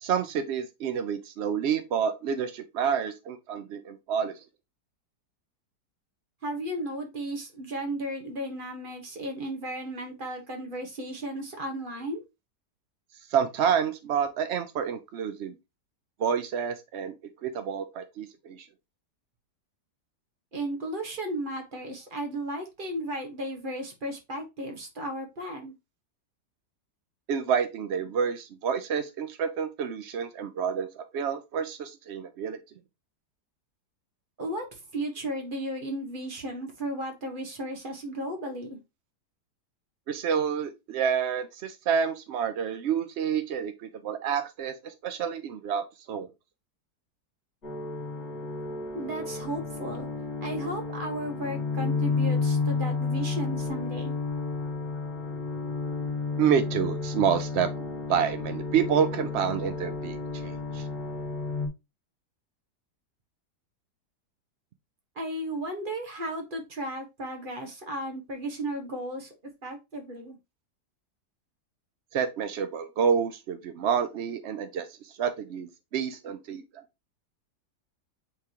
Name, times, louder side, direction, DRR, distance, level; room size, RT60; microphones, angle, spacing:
voice 1, 0.0-4.4 13.3-15.5 16.2-17.1 17.4-18.7 27.3-32.6 40.1-46.3 56.4-57.7 58.1-60.9 72.1-76.8, right 7 dB, 75° right, 0.6 m, -28 dB
voice 2, 6.4-12.2 20.5-25.7 34.4-38.8 48.9-50.1 50.4-54.1 65.1-69.3 69.6-70.4, right 1 dB, 30° right, 1.5 m, -34 dB
sound 1, 47.6-61.7, left 4 dB, 45° left, 2.2 m, -31 dB
8.8 x 3.6 x 3.0 m
omnidirectional pair, 1.8 m